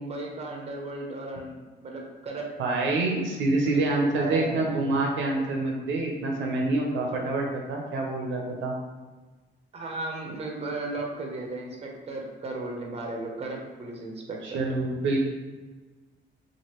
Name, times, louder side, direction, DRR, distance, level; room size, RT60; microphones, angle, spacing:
voice 1, 0.0-2.5 3.6-3.8 4.1-4.8 9.7-14.8, right 2 dB, 30° right, 0 dB, 0.6 m, -35 dB
voice 2, 2.6-8.7 14.4-15.2, right 2 dB, 75° right, 0 dB, 0.6 m, -26 dB
3.0 x 2.5 x 2.9 m, 1.3 s
cardioid pair, 90°, 20 cm